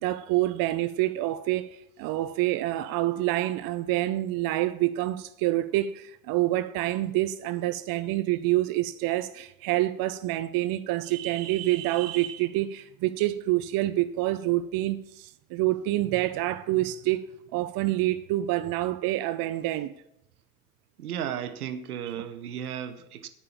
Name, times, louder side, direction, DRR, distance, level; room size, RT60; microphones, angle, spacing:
voice 1, 0.0-17.2 17.5-19.9, right 16 dB, 50° right, 0.7 m, -27 dB
voice 2, 21.0-23.3, right 9 dB, 85° right, 1.0 m, -34 dB
8.9 x 8.5 x 7.2 m
hypercardioid pair, 60°, 43 cm